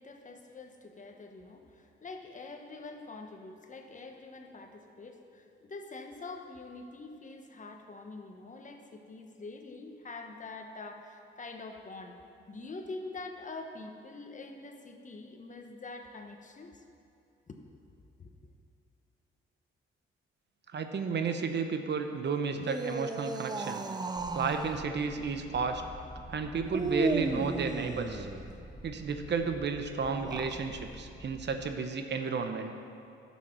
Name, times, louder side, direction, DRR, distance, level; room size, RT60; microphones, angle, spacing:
voice 1, 0.0-12.2 12.5-16.8 17.5-17.6 18.2-18.3, left 3 dB, 35° left, 4 dB, 1.2 m, -45 dB
voice 2, 20.7-23.8 24.3-25.8 26.3-28.3 28.8-32.7, right 5 dB, 55° right, 6 dB, 0.9 m, -32 dB
sound 1, 22.5-24.8 26.7-28.5 30.1-30.6, right 3 dB, 20° right, 0.6 m, -34 dB
sound 2, 24.2-31.8, equal, 5° left, 1.0 m, -48 dB
11.0 x 7.3 x 6.1 m, 2.6 s
cardioid pair, 90°, 21 cm